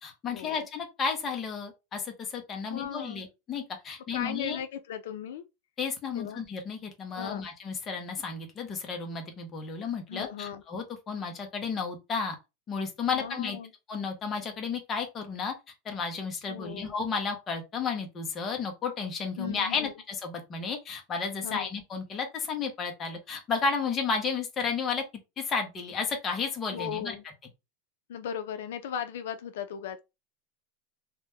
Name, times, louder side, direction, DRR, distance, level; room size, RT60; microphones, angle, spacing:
voice 1, 0.0-4.6 5.8-12.4 12.7-13.6 13.9-15.5 15.8-25.0 25.4-27.2, left 5 dB, 20° left, 0.6 m, -32 dB
voice 2, 2.7-3.2 4.1-5.4 6.1-6.4 7.1-7.5 10.1-10.6 13.1-13.7 16.5-16.9 19.4-19.9 21.4-21.7 26.7-27.2 28.1-30.0, left 8 dB, 75° left, 0.4 m, -37 dB
2.9 x 2.0 x 3.4 m
supercardioid pair, 175°, 0 cm